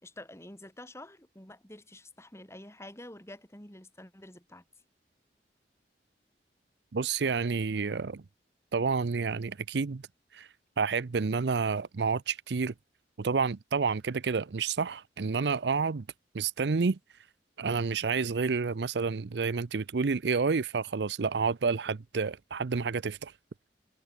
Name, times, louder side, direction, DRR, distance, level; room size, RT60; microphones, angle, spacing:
voice 1, 0.0-4.6, left 1 dB, 15° left, 4.6 m, -48 dB
voice 2, 6.9-8.2 8.7-10.0 10.3-10.5 10.8-12.7 13.2-16.1 16.3-17.0 17.6-23.3, right 5 dB, 75° right, 0.6 m, -29 dB
head